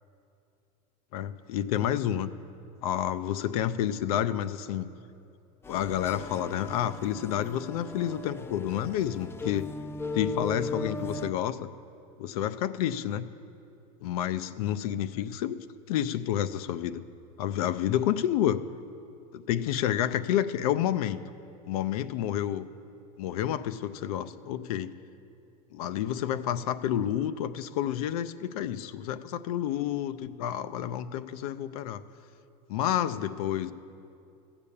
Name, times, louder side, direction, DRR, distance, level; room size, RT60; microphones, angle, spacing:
voice 1, 1.1-2.3 2.8-4.9 5.7-9.7 10.1-11.7 12.2-13.3 14.0-15.6 15.9-17.0 17.4-18.6 19.3-21.2 21.7-22.7 23.2-24.9 25.7-32.0 32.7-33.7, left 11 dB, 85° left, 12 dB, 0.5 m, -29 dB
sound 1, 5.6-11.3, left 2 dB, 15° left, 0.4 m, -38 dB
14.5 x 6.9 x 7.0 m, 2.6 s
supercardioid pair, 115°, 18 cm